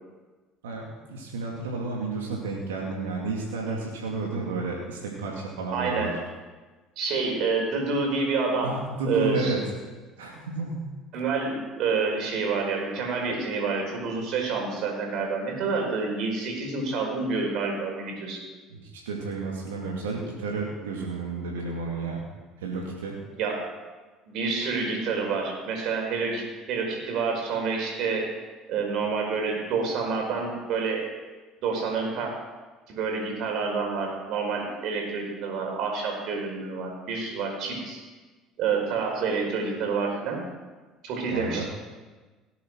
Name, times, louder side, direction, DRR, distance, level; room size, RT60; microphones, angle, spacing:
voice 1, 0.6-6.1 8.6-9.6 10.2-10.8 18.7-22.2 22.6-23.2 41.3-41.7, right 3 dB, 90° right, -2 dB, 2.4 m, -31 dB
voice 2, 5.7-6.1 7.0-8.7 9.0-9.5 11.1-18.4 23.4-23.6 24.3-28.3 28.7-31.1 31.6-32.3 32.9-38.0 38.6-40.4 41.0-41.7, right 4 dB, 65° right, 1 dB, 4.9 m, -28 dB
17.5 x 8.6 x 6.3 m, 1.3 s
hypercardioid pair, 70°, 0 cm